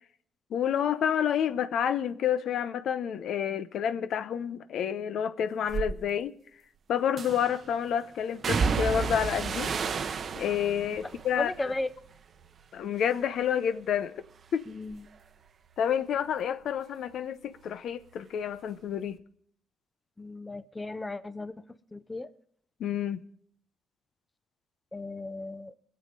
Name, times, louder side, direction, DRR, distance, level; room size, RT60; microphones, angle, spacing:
voice 1, 0.5-6.3 6.9-9.8 10.4-11.5 12.7-14.1 14.5-14.7 15.8-19.2 22.8-23.2, left 8 dB, 70° left, 0.6 m, -29 dB
sound 1, 5.7-5.9 7.2-7.6 8.4-12.7 13.0-13.6 14.0-17.3 17.5-18.7 19.0-19.1, right 5 dB, 50° right, 0.7 m, -33 dB
voice 2, 11.0-11.9 14.7-15.0 20.2-21.6 21.9-22.3 24.9-25.7, left 2 dB, 15° left, 0.6 m, -35 dB
20.5 x 7.7 x 5.1 m
cardioid pair, 90°, 0 cm